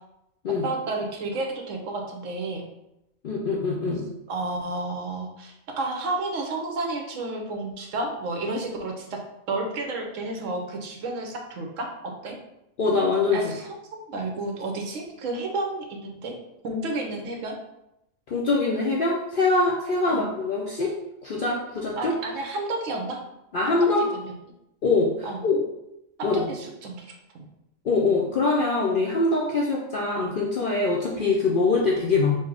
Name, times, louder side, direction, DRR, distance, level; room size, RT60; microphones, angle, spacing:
voice 1, 0.6-2.6 4.3-9.2 9.5-11.9 12.2-12.4 13.3-16.3 16.6-17.6 20.1-20.3 22.0-23.2 23.6-24.3 25.2-25.4 26.2-27.5, right 2 dB, 70° right, 2 dB, 1.1 m, -31 dB
voice 2, 3.2-4.0 12.8-13.4 18.3-20.9 21.2-22.2 23.5-24.1 24.8-25.6 26.2-26.5 27.8-32.4, left 3 dB, 60° left, -3 dB, 0.5 m, -23 dB
4.4 x 2.1 x 4.6 m, 0.86 s
omnidirectional pair, 1.4 m